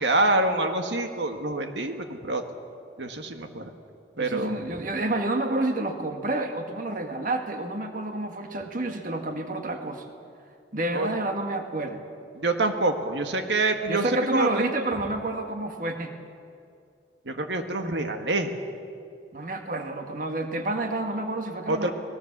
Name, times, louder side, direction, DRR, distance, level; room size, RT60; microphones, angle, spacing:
voice 1, 0.0-2.4 3.0-3.7 4.2-4.6 10.9-11.1 12.3-14.6 17.2-18.5 21.7-21.9, right 2 dB, 90° right, 5 dB, 1.7 m, -26 dB
voice 2, 4.2-10.0 10.7-12.0 13.9-16.1 19.3-21.9, right 2 dB, 50° right, 5 dB, 1.7 m, -29 dB
25.5 x 19.5 x 7.4 m, 2.4 s
head